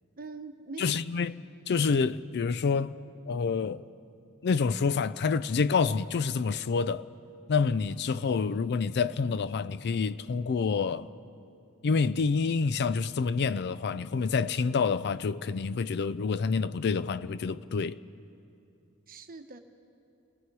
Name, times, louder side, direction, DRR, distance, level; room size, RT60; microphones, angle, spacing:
voice 1, 0.2-1.0 19.1-19.6, right 3 dB, 40° right, 1.1 m, -43 dB
voice 2, 0.8-1.4 1.7-3.0 3.3-3.8 4.4-7.1 7.5-11.1 11.8-18.0, left 5 dB, 50° left, 0.4 m, -28 dB
29.0 x 19.5 x 4.7 m
head